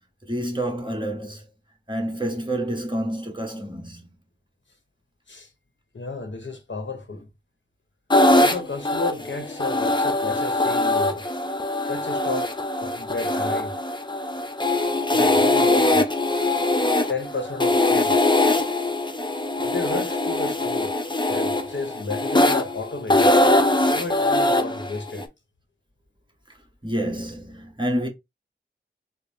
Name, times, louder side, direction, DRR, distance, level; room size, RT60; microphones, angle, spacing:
voice 1, 0.2-1.5 1.9-4.1 26.8-28.1, right 1 dB, 25° right, 1.4 m, -28 dB
voice 2, 5.9-7.3 8.4-11.2 11.8-12.5 12.8-13.8 15.1-16.1 17.1-18.4 19.6-21.0 21.3-23.3 23.9-25.3, left 3 dB, 70° left, 0.9 m, -32 dB
sound 1, 8.1-25.2, left 2 dB, 25° left, 0.7 m, -22 dB
4.1 x 2.1 x 3.4 m
wide cardioid pair, 50°, 20 cm